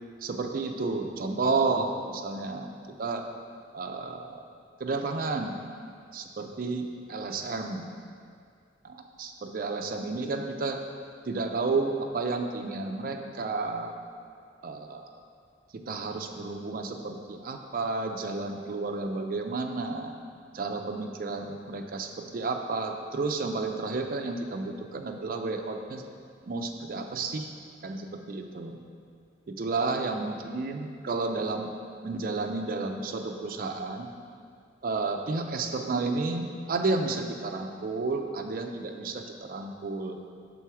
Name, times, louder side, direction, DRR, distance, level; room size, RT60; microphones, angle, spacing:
voice 1, 0.2-2.7 3.0-3.3 3.7-4.4 4.8-5.6 6.1-7.9 8.8-10.8 11.3-13.9 14.6-15.1 15.7-20.1 20.5-26.0 26.5-27.5 27.8-28.8 29.5-31.7 32.0-34.1 34.8-39.2 39.5-40.2, right 3 dB, 50° right, 4 dB, 0.4 m, -31 dB
5.7 x 3.8 x 4.7 m, 2.2 s
head